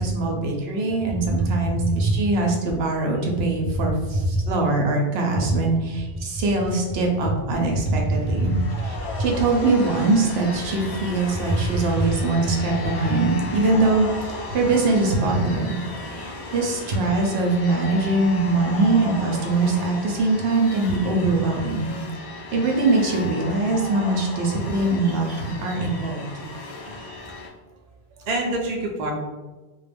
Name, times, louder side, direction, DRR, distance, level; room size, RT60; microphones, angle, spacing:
voice 1, 0.0-8.5 8.8-15.8 16.1-21.9 22.5-26.3, right 3 dB, 75° right, 0 dB, 0.8 m, -22 dB
voice 2, 0.8-2.2 3.8-3.9 4.1-4.5 5.5-5.6 6.4-6.5 7.2-7.3 7.9-8.6 9.2-9.3 11.5-12.1 13.0-13.2 25.0-25.4 26.7-27.2 28.2-29.1, right 1 dB, 50° right, 0 dB, 0.5 m, -25 dB
sound 1, 8.1-27.5, left 3 dB, 65° left, 0.7 m, -35 dB
2.3 x 2.1 x 3.3 m, 1.2 s
omnidirectional pair, 1.1 m